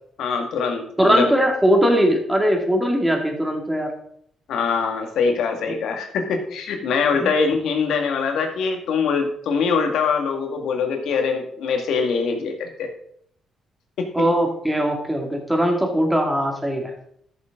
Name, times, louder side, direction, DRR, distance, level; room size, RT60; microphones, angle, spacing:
voice 1, 0.2-1.3 4.5-12.9 14.0-14.3, left 5 dB, 75° left, 4 dB, 2.1 m, -23 dB
voice 2, 1.0-3.9 7.2-7.3 14.1-16.9, equal, 5° right, 2 dB, 2.7 m, -20 dB
13.5 x 7.2 x 3.9 m, 0.66 s
cardioid pair, 90°, 0 cm